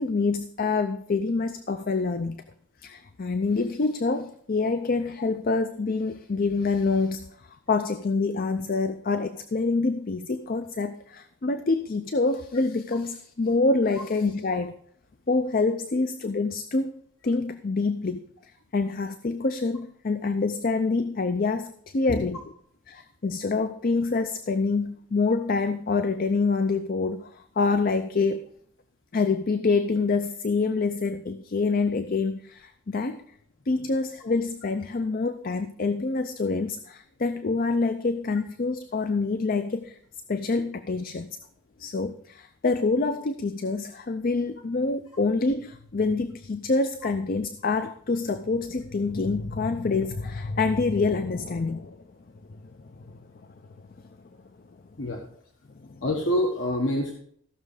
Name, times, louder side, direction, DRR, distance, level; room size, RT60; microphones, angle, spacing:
voice 1, 0.0-2.4 2.8-14.8 15.3-16.9 17.2-22.4 22.9-28.5 29.1-33.2 33.7-40.0 40.3-41.4 41.8-52.0 52.8-53.2 55.9-56.0, left 3 dB, 45° left, 10 dB, 0.5 m, -26 dB
voice 2, 56.0-57.1, left 1 dB, 70° left, 0 dB, 1.4 m, -26 dB
15.0 x 6.3 x 4.9 m, 0.67 s
head